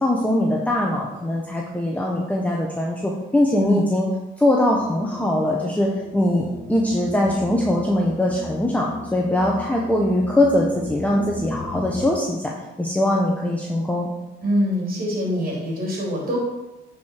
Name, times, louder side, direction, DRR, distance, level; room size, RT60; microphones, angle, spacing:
voice 1, 0.0-4.1 4.4-12.4 12.8-14.1, left 1 dB, 5° left, -2 dB, 1.2 m, -21 dB
sound 1, 4.6-12.1, left 2 dB, 50° left, 2.0 m, -36 dB
voice 2, 14.4-16.4, equal, 45° right, -3 dB, 3.2 m, -24 dB
9.5 x 5.0 x 4.5 m, 1.0 s
cardioid pair, 90°, 20 cm